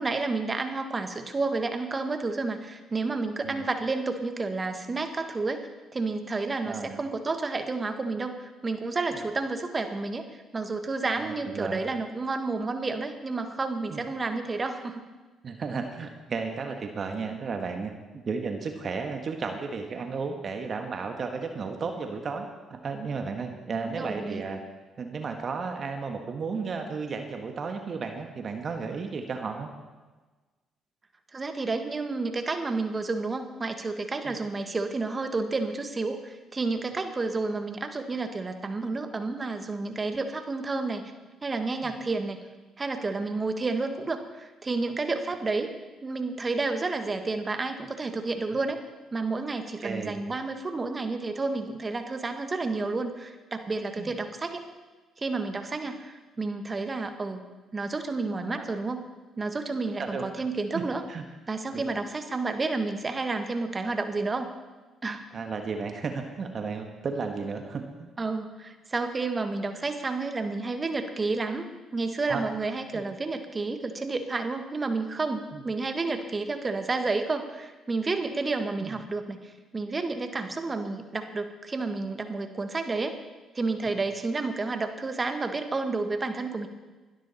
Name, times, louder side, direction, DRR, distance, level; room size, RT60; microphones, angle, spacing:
voice 1, 0.0-15.0 23.8-24.4 31.3-41.1 41.4-42.4 42.8-48.8 49.1-54.6 55.2-57.4 57.7-59.0 59.4-61.0 61.5-64.5 65.0-65.2 68.2-83.2 83.6-86.7, right 3 dB, 30° right, 7 dB, 1.8 m, -30 dB
voice 2, 6.7-7.0 11.2-11.8 13.9-14.1 15.4-17.9 18.2-24.6 25.0-29.7 34.3-34.4 41.8-41.9 49.8-50.2 54.0-54.1 58.5-58.7 60.0-60.2 60.7-61.2 61.7-61.8 65.3-68.1 72.3-72.4 72.9-73.0 75.5-75.6 78.8-79.0 83.8-84.0, right 4 dB, 50° right, 5 dB, 1.7 m, -33 dB
21.0 x 12.5 x 4.4 m, 1.3 s
hypercardioid pair, 55°, 0 cm